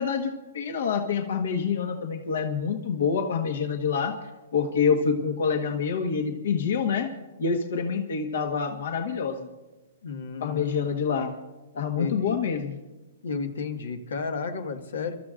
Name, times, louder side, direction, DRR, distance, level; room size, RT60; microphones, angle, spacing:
voice 1, 0.0-4.1 4.5-7.1 7.4-9.5 10.4-11.3 11.7-12.8, left 6 dB, 70° left, 4 dB, 1.4 m, -26 dB
voice 2, 10.0-10.8 12.0-12.4 13.2-15.2, left 5 dB, 85° left, 5 dB, 1.7 m, -33 dB
29.5 x 13.5 x 2.5 m, 1.1 s
hypercardioid pair, 150°, 0 cm